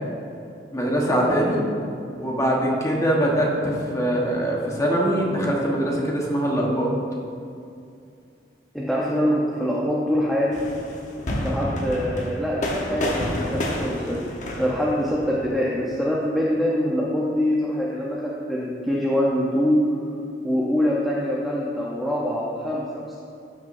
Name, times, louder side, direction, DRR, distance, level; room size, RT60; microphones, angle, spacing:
voice 1, 0.7-1.6 2.2-6.9, right 1 dB, 20° left, -2 dB, 1.3 m, -22 dB
voice 2, 8.7-10.6 11.4-14.2 14.6-19.8 20.4-23.2, equal, ahead, -6 dB, 0.7 m, -24 dB
sound 1, 10.5-15.5, left 1 dB, 45° left, 1.1 m, -29 dB
13.0 x 6.4 x 2.7 m, 2.5 s
head